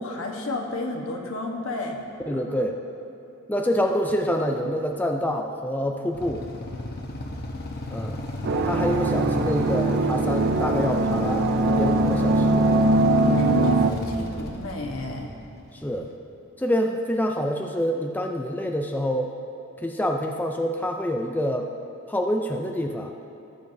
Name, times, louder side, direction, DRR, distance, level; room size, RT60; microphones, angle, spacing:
voice 1, 0.0-2.0 2.3-2.6 13.2-15.3, left 2 dB, 70° left, 1 dB, 1.2 m, -32 dB
voice 2, 2.3-2.8 3.5-6.4 7.9-8.2 8.6-12.7 15.7-16.1 16.6-19.3 19.8-21.7 22.1-23.1, equal, 10° left, 2 dB, 0.4 m, -26 dB
Motorcycle / Idling, 6.1-16.1, left 2 dB, 50° left, 1.0 m, -33 dB
sound 1, 8.4-13.9, right 2 dB, 55° right, 0.5 m, -21 dB
17.5 x 7.3 x 2.7 m, 2.9 s
head